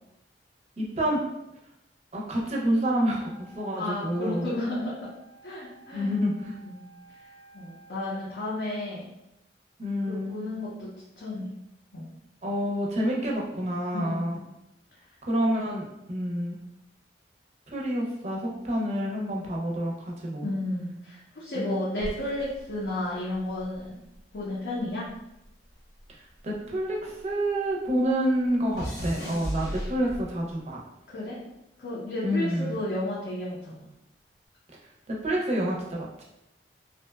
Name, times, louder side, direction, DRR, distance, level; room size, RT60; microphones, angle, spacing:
voice 1, 0.8-1.2 2.1-4.6 5.9-6.6 9.8-10.4 12.4-14.4 15.2-16.6 17.7-20.5 21.5-21.9 26.1-30.8 32.2-32.7 35.1-36.2, equal, 40° right, -2 dB, 0.5 m, -28 dB
Wind instrument woodwind instrument, 2.8-8.1, right 3 dB, 20° left, 0.6 m, -54 dB
voice 2, 3.7-5.1 5.4-6.1 6.6-6.8 7.5-9.0 10.1-11.5 11.9-12.1 13.9-14.4 20.4-24.0 24.3-25.1 31.1-31.4 31.8-33.9, left 1 dB, 70° left, -8 dB, 0.6 m, -33 dB
sound 1, 22.0-24.5 24.8-27.4 27.7-30.5 31.3-31.6, equal, 85° left, 1.0 m, -38 dB
2.6 x 2.1 x 2.2 m, 0.87 s
head